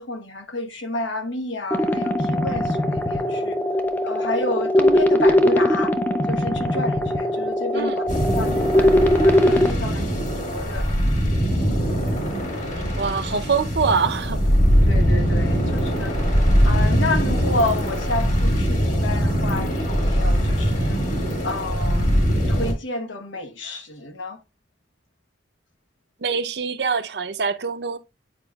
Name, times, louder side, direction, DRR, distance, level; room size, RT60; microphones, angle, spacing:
voice 1, 0.0-3.6 4.0-6.0 6.3-8.9 9.2-10.1 10.4-10.9 14.9-16.1 16.6-21.0 21.4-24.4, left 2 dB, 90° left, 1.1 m, -30 dB
sound 1, 1.7-9.7, left 1 dB, 10° left, 0.5 m, -20 dB
sound 2, 8.1-22.7, equal, 40° left, 1.8 m, -21 dB
voice 2, 13.0-14.5 26.2-28.0, right 5 dB, 60° right, 0.6 m, -24 dB
8.7 x 4.9 x 2.3 m
head